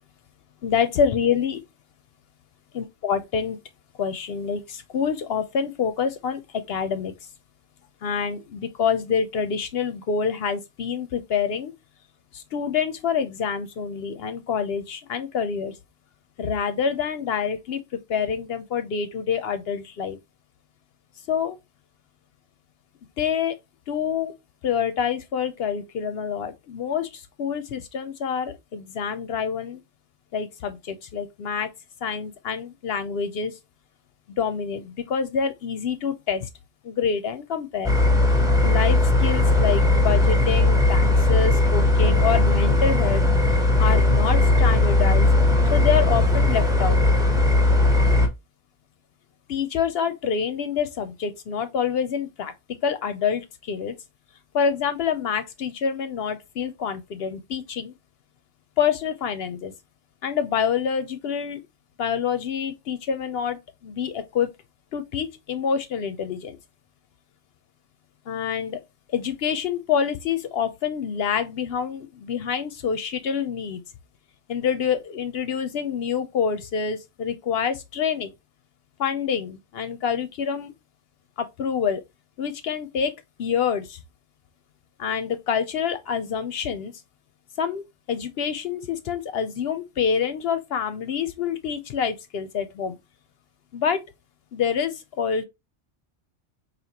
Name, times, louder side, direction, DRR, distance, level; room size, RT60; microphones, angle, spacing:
voice 1, 0.6-1.6 2.7-3.6 4.0-7.1 8.0-11.7 12.3-15.7 16.4-17.8 18.1-20.2 21.3-21.6 23.2-23.5 23.9-24.3 24.6-29.8 30.3-31.7 32.0-33.5 34.4-36.5 36.8-37.9 38.6-43.2 43.8-45.3 45.7-47.0 49.5-52.5 52.8-53.9 54.5-57.9 58.8-59.7 60.2-61.6 62.0-64.5 64.9-66.6 68.3-68.8 69.1-73.8 74.5-78.3 79.0-80.7 81.4-82.0 82.4-83.1 83.4-84.0 85.0-86.9 87.6-87.8 88.1-92.9 93.7-94.0 94.5-95.4, left 7 dB, 65° left, 0.7 m, -26 dB
sound 1, 37.8-48.3, left 2 dB, 5° right, 0.6 m, -18 dB
4.2 x 2.8 x 2.8 m
omnidirectional pair, 1.2 m